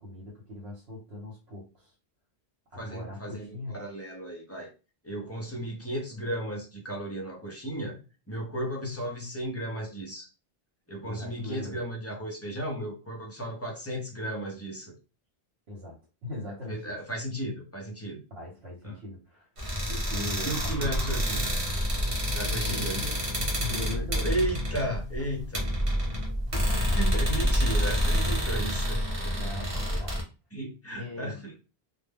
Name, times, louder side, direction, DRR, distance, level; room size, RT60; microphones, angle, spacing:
voice 1, 0.0-1.9 2.7-3.8 11.0-11.8 15.7-16.0 16.2-17.0 18.3-19.5 19.9-21.2 22.6-23.2 23.6-24.3 26.5-27.0 29.4-30.2 31.0-31.4, left 2 dB, 80° right, -3 dB, 1.1 m, -39 dB
voice 2, 2.8-4.7 5.0-8.0 8.3-10.3 10.9-15.0 16.7-18.2 18.8-19.0 20.5-21.5 22.3-23.0 24.2-25.6 26.8-29.5 30.5-31.6, right 1 dB, 20° left, 0 dB, 0.5 m, -34 dB
sound 1, 19.6-30.2, equal, 35° right, 0.8 m, -28 dB
2.2 x 2.0 x 3.4 m, 0.32 s
omnidirectional pair, 1.1 m